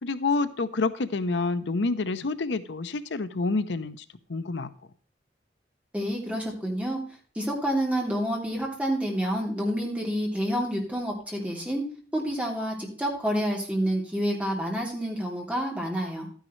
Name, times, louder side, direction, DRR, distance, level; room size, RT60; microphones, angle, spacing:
voice 1, 0.0-4.0 4.3-4.7, left 3 dB, 75° left, 12 dB, 0.7 m, -28 dB
voice 2, 5.9-7.0 7.3-11.8 12.1-16.3, equal, 10° right, -1 dB, 3.0 m, -28 dB
12.0 x 10.5 x 3.2 m, 0.42 s
head